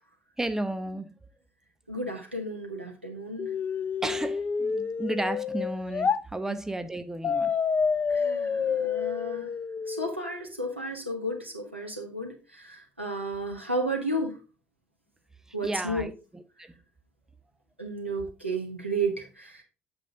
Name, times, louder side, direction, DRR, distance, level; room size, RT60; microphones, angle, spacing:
voice 1, 0.4-1.1 4.0-7.5 15.6-16.7, right 1 dB, 10° right, 0.8 m, -33 dB
voice 2, 1.9-3.5 8.1-9.5 9.9-14.3 15.5-16.1 17.8-19.6, right 1 dB, 90° right, 1.5 m, -33 dB
sound 1, 3.4-6.2 7.2-10.2, left 6 dB, 30° left, 0.5 m, -28 dB
8.5 x 7.0 x 3.7 m
figure-of-eight pair, 55°, 6 cm